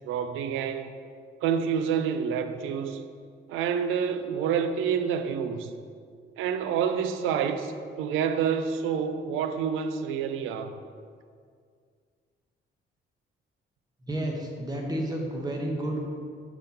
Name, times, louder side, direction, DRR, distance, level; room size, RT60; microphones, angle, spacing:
voice 1, 0.0-1.0 1.4-3.0 3.5-5.7 6.4-10.8, right 7 dB, 90° right, 9 dB, 0.5 m, -28 dB
voice 2, 14.1-16.1, right 1 dB, 20° right, 0 dB, 1.2 m, -31 dB
6.5 x 4.0 x 4.3 m, 2.1 s
cardioid pair, 90°, 20 cm